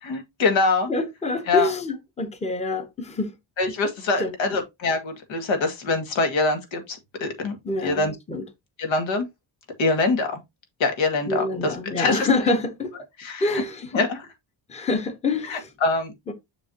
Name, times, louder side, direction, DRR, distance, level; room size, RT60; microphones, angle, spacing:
voice 1, 0.0-0.9 1.5-1.7 3.6-7.6 7.8-8.1 8.8-9.3 9.8-10.4 10.8-12.3 13.2-13.6 13.9-14.3 15.5-16.1, left 3 dB, 85° left, 2.2 m, -24 dB
voice 2, 0.9-3.3 4.2-4.6 7.6-8.5 11.3-12.9 13.4-13.8 14.7-15.7 16.3-16.4, left 2 dB, 15° left, 0.9 m, -26 dB
7.0 x 6.6 x 2.8 m
wide cardioid pair, 175°, 45 cm